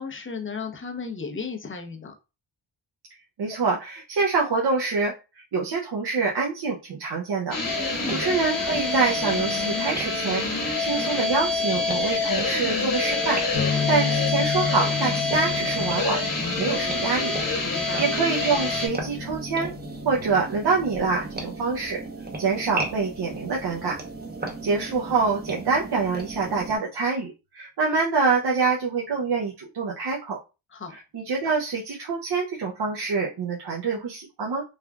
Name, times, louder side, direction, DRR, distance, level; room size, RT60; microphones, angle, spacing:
voice 1, 0.0-2.1 7.9-8.2 17.6-18.1 30.7-31.0, left 5 dB, 25° left, 5 dB, 0.6 m, -34 dB
voice 2, 3.4-7.6 8.1-13.4 13.7-16.2 16.6-17.3 17.8-19.7 20.0-22.0 22.4-24.0 24.6-30.4 31.1-34.6, right 4 dB, 55° right, -2 dB, 0.7 m, -26 dB
sound 1, 7.5-18.9, left 3 dB, 45° left, 1.3 m, -26 dB
sound 2, 7.6-26.8, right 3 dB, 20° right, 0.8 m, -37 dB
sound 3, 13.5-21.1, left 6 dB, 90° left, 0.8 m, -33 dB
3.3 x 2.4 x 2.3 m, 0.29 s
cardioid pair, 65°, 48 cm